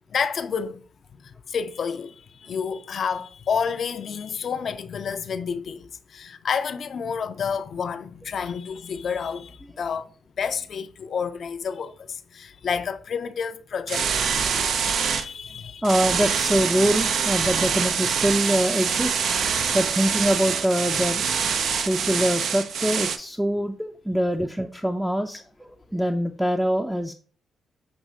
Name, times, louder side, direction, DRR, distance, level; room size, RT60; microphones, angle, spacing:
voice 1, 0.1-0.8 1.2-10.1 10.4-15.9 19.6-19.7, left 6 dB, 60° left, 0.4 m, -30 dB
sound 1, 13.9-15.2 15.8-23.2, right 6 dB, 65° right, 0.4 m, -25 dB
voice 2, 15.8-19.4 19.7-21.4 21.8-27.1, equal, 5° right, 0.4 m, -24 dB
6.1 x 3.0 x 2.7 m
hypercardioid pair, 45°, 0 cm